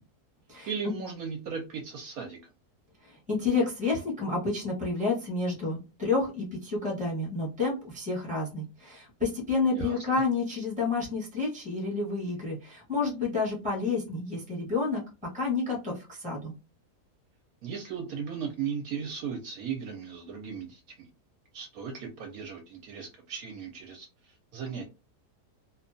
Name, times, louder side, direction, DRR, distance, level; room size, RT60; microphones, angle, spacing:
voice 1, 0.7-2.4 9.8-10.2 17.6-21.1 21.5-24.8, right 6 dB, 70° right, 3 dB, 1.0 m, -37 dB
voice 2, 3.0-15.0 15.3-16.5, left 3 dB, 5° right, -2 dB, 0.8 m, -30 dB
2.7 x 2.2 x 2.5 m, 0.30 s
omnidirectional pair, 1.7 m